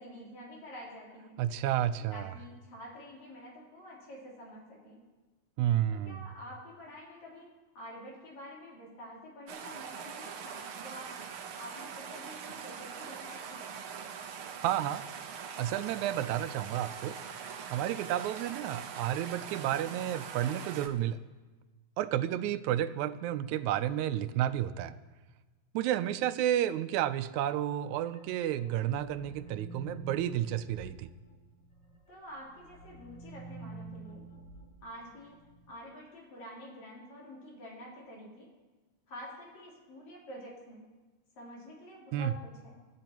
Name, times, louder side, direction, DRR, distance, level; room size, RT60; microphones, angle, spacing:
voice 1, 0.0-1.3 2.1-5.0 5.9-7.5 7.7-11.1 11.6-13.7 32.1-34.2 34.8-35.4 35.7-38.5 39.1-40.8 41.4-42.8, equal, 70° left, -5 dB, 4.9 m, -48 dB
voice 2, 1.4-2.3 5.6-6.2 14.6-15.1 15.6-17.2 17.7-21.2 22.0-25.0 25.7-31.1 42.1-42.3, right 11 dB, 85° right, 12 dB, 2.0 m, -31 dB
sound 1, 9.5-20.9, right 7 dB, 65° right, 1.5 m, -43 dB
sound 2, 28.0-31.9 32.3-35.7, right 3 dB, 45° left, 1.7 m, -49 dB
19.5 x 13.0 x 3.0 m, 1.3 s
omnidirectional pair, 3.3 m